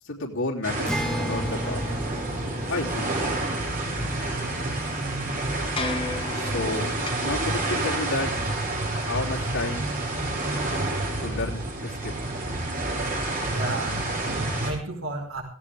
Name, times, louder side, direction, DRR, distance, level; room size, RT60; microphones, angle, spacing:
voice 1, 0.0-1.8 2.7-3.1 6.3-8.4 8.9-9.9 11.2-12.2, left 2 dB, 75° left, -3 dB, 3.5 m, -31 dB
sound 1, 0.6-14.7, right 2 dB, 45° right, 7.2 m, -29 dB
Acoustic guitar, 0.9-6.3, equal, 5° left, 1.5 m, -36 dB
sound 2, 1.0-7.1, left 3 dB, 25° left, 2.2 m, -37 dB
voice 2, 13.5-15.4, right 2 dB, 75° right, 1 dB, 5.0 m, -33 dB
17.0 x 16.5 x 3.6 m, 0.41 s
head